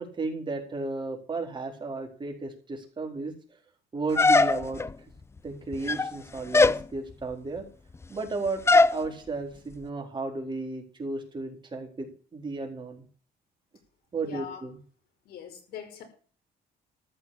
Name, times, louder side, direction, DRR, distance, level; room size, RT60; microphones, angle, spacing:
voice 1, 0.0-3.3 3.9-4.8 5.4-7.6 8.1-8.6 8.9-13.0 14.1-14.8, right 3 dB, 25° right, 4.3 m, -34 dB
sound 1, 4.2-4.9 5.7-6.2 6.5-6.8 8.7-9.0, left 3 dB, 15° left, 0.5 m, -20 dB
voice 2, 14.1-14.6 15.3-16.0, left 8 dB, 70° left, 5.4 m, -42 dB
14.0 x 6.0 x 8.5 m
cardioid pair, 110°, 17 cm